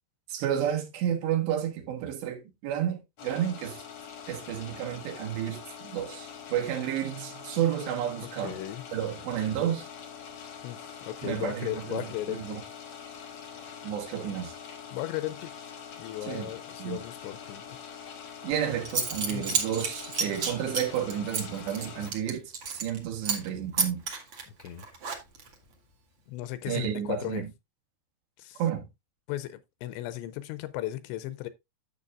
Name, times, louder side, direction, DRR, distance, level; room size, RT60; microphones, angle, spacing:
voice 1, 0.3-3.8 4.3-8.6 8.9-9.9 11.2-12.6 13.8-14.6 16.2-16.5 16.8-17.0 18.4-24.0 26.7-27.5 28.6-28.9, right 10 dB, 75° right, 3.7 m, -31 dB
sound 1, 3.2-22.1, left 7 dB, 65° left, 1.7 m, -44 dB
voice 2, 8.4-8.8 10.6-12.6 14.9-15.5 16.0-17.8 19.3-19.6 24.5-24.9 26.3-27.4 28.4-28.6 29.3-31.5, left 14 dB, 85° left, 2.9 m, -36 dB
Zipper (clothing) / Coin (dropping), 18.5-18.6 18.8-23.0 23.2-23.5 23.8-25.5, right 5 dB, 50° right, 1.9 m, -31 dB
11.0 x 7.7 x 2.5 m
omnidirectional pair, 5.2 m